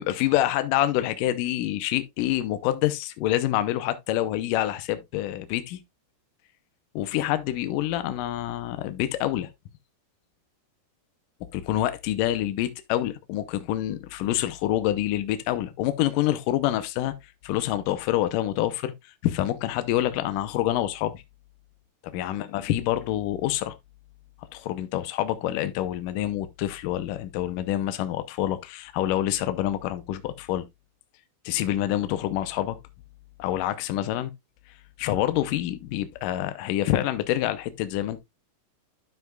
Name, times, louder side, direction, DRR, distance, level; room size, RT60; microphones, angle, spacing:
voice 1, 0.0-5.8 7.0-9.5 11.5-17.1 17.4-18.9 19.2-21.2 22.1-23.7 24.5-30.7 31.5-32.8 33.4-34.3 35.0-38.2, left 13 dB, 85° left, 1.9 m, -27 dB
12.0 x 5.8 x 2.3 m
omnidirectional pair, 4.7 m